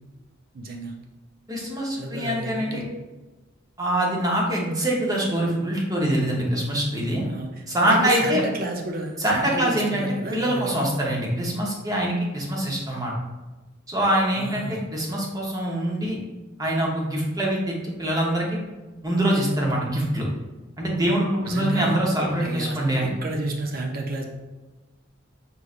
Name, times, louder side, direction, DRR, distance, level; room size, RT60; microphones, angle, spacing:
voice 1, 0.5-1.0 2.0-2.9 7.2-10.7 14.3-14.9 21.5-22.0 22.4-24.2, right 2 dB, 50° right, 2 dB, 0.6 m, -31 dB
voice 2, 1.5-2.8 3.8-7.2 7.7-8.4 9.2-13.1 13.9-16.2 16.6-18.6 19.0-20.3 20.8-23.1, right 1 dB, 20° right, -2 dB, 0.8 m, -24 dB
5.2 x 3.1 x 2.4 m, 1.2 s
head